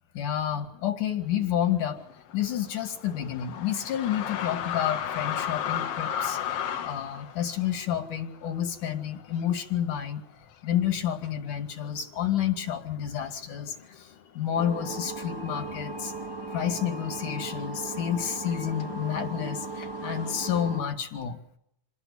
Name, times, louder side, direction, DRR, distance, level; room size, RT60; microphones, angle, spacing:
voice 1, 0.1-2.0 2.3-6.4 6.8-10.2 10.6-14.1 14.4-16.1 16.5-21.4, left 10 dB, 85° left, 6 dB, 3.8 m, -30 dB
sound 1, 2.0-9.6 10.0-10.1 10.8-11.3 12.0-12.2 12.4-14.1 14.5-15.0 15.3-19.0 19.8-20.7, left 9 dB, 60° left, 1.8 m, -36 dB
sound 2, 14.5-20.8, right 3 dB, 10° right, 2.3 m, -37 dB
28.0 x 19.5 x 7.1 m, 0.75 s
omnidirectional pair, 3.5 m